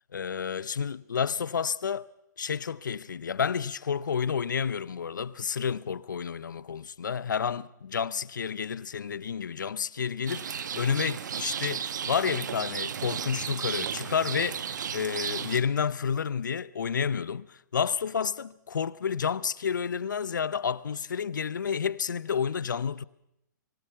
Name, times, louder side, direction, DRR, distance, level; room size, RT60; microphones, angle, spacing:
voice 1, 0.1-2.1 2.4-23.0, left 7 dB, 80° left, 0.7 m, -30 dB
Rain, 10.3-15.6, right 8 dB, 70° right, 1.3 m, -34 dB
25.5 x 20.5 x 5.8 m
hypercardioid pair, 125°, 10 cm